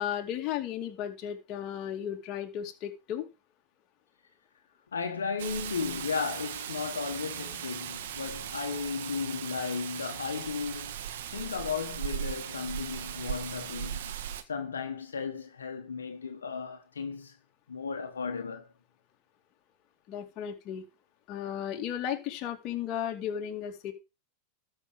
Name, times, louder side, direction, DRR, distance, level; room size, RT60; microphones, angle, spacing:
voice 1, 0.0-3.3 20.1-20.9 21.3-23.9, left 10 dB, 45° left, 2.5 m, -35 dB
voice 2, 4.9-10.9 11.3-14.1 14.5-17.4 17.7-18.7, left 5 dB, 90° left, 1.3 m, -35 dB
Rain, 5.4-14.4, right 10 dB, 70° right, 1.3 m, -38 dB
12.5 x 5.8 x 5.1 m
hypercardioid pair, 100°, 0 cm